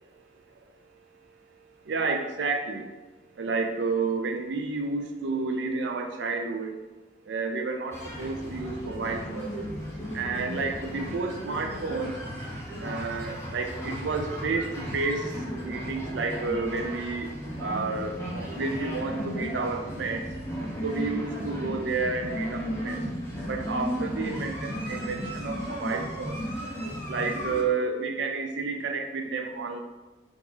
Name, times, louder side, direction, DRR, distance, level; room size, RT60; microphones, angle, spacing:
voice 1, 1.9-2.8 3.4-6.7 7.3-9.6 10.1-12.2 12.8-15.2 15.6-17.3 17.6-20.2 20.8-23.0 23.5-26.4 27.1-29.8, right 4 dB, 85° right, 4 dB, 0.5 m, -30 dB
sound 1, 7.9-27.6, equal, 15° left, 0.9 m, -35 dB
3.5 x 3.0 x 3.9 m, 1.1 s
head